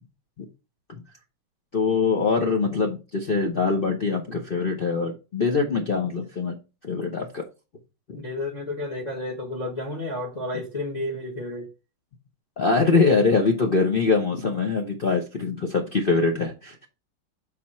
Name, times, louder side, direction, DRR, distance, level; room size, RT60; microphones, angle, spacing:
voice 1, 1.7-6.5 6.8-7.4 8.1-8.2 12.6-16.9, left 4 dB, 70° left, 0.5 m, -23 dB
voice 2, 8.1-11.7, left 1 dB, 25° left, 1.1 m, -31 dB
5.8 x 4.3 x 4.2 m
omnidirectional pair, 2.3 m